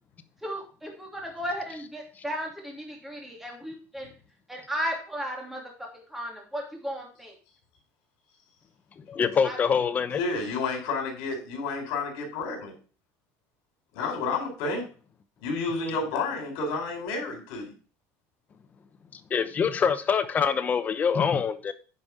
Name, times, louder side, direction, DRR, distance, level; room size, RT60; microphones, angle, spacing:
voice 1, 0.4-4.1 4.5-5.6 5.9-7.4 9.4-9.6, equal, 5° right, 0 dB, 2.9 m, -35 dB
voice 2, 9.1-10.2 19.3-21.7, left 6 dB, 25° left, 10 dB, 0.8 m, -25 dB
voice 3, 10.2-12.8 13.9-14.8 15.4-17.7, left 3 dB, 80° left, 1 dB, 4.2 m, -30 dB
9.8 x 5.3 x 4.9 m, 0.37 s
cardioid pair, 150°, 7 cm